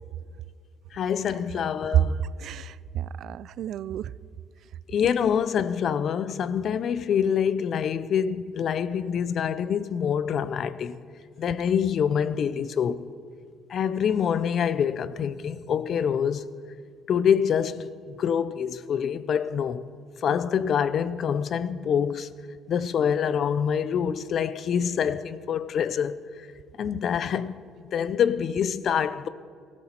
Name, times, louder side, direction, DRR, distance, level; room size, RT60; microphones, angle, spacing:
voice 1, 0.9-2.2 4.9-11.0 11.4-13.1 13.7-16.4 17.1-19.9 20.2-22.3 22.7-26.2 26.8-27.5 27.9-29.3, left 8 dB, 45° left, 0.5 m, -26 dB
voice 2, 1.9-4.1, right 10 dB, 55° right, 0.3 m, -28 dB
18.0 x 14.0 x 4.4 m
cardioid pair, 160°, 0 cm